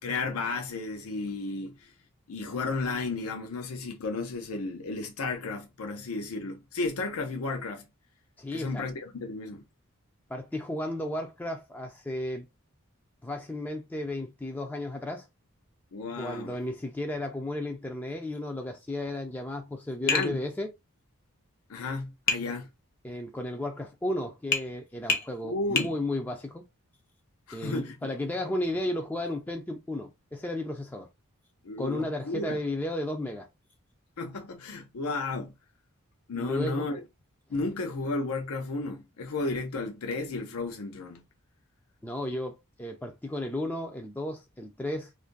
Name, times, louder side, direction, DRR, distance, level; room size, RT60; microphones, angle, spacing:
voice 1, 0.0-1.9 2.3-7.8 8.5-9.6 15.9-16.5 20.0-20.4 21.7-22.7 25.4-25.9 27.5-27.9 31.6-32.6 34.2-35.5 36.3-37.0 37.5-41.2, left 3 dB, 90° left, 0.6 m, -33 dB
voice 2, 8.4-8.8 10.3-12.5 13.2-15.3 16.2-20.7 23.0-26.6 27.5-31.1 31.8-33.5 36.3-36.9 42.0-45.1, left 1 dB, 10° left, 0.3 m, -34 dB
Tap, 20.1-20.3 22.3-22.5 24.5-24.7 25.1-25.3 25.8-25.9, left 4 dB, 45° left, 0.7 m, -26 dB
2.5 x 2.5 x 3.7 m
head